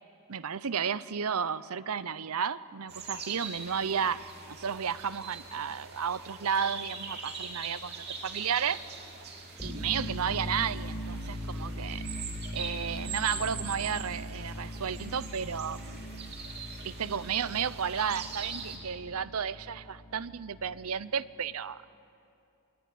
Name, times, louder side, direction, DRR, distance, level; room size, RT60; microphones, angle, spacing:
voice 1, 0.3-8.8 9.6-12.0 12.5-16.0 16.8-21.9, right 7 dB, 80° right, 16 dB, 0.7 m, -33 dB
sound 1, 2.9-18.8, right 5 dB, 50° right, 3.4 m, -42 dB
sound 2, 9.5-21.0, equal, 10° left, 6.3 m, -40 dB
28.5 x 21.0 x 9.4 m, 2.7 s
head